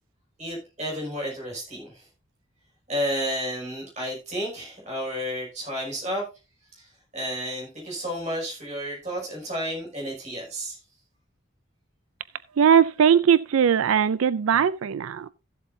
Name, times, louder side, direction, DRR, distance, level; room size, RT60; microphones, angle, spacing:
voice 1, 0.4-2.1 2.9-6.3 6.7-10.8, equal, 35° right, 5.8 m, -31 dB
voice 2, 12.6-15.3, right 8 dB, 85° right, 0.4 m, -20 dB
15.5 x 7.7 x 2.7 m
head